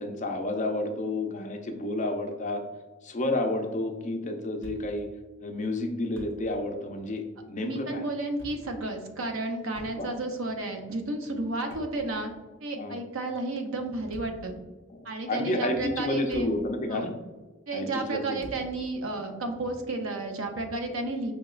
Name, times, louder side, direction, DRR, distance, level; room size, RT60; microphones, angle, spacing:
voice 1, 0.0-2.6 3.0-5.1 5.4-8.0 10.0-10.1 12.8-13.0 14.9-17.1 17.7-18.4, left 1 dB, 35° left, 4 dB, 0.5 m, -30 dB
Thump thud, 4.6-5.1 5.4-5.5 6.0-6.7 7.0-7.1 8.1-8.8 9.7-10.3 11.5-12.5 13.9-14.6 15.3-15.4 16.0-16.8 17.0-17.2 18.4-18.8, equal, 60° right, 1.1 m, -47 dB
voice 2, 7.6-12.3 12.6-14.6 15.0-16.5 16.9-17.1 17.7-21.3, right 2 dB, 80° right, 5 dB, 0.6 m, -32 dB
5.1 x 2.8 x 2.4 m, 1.2 s
head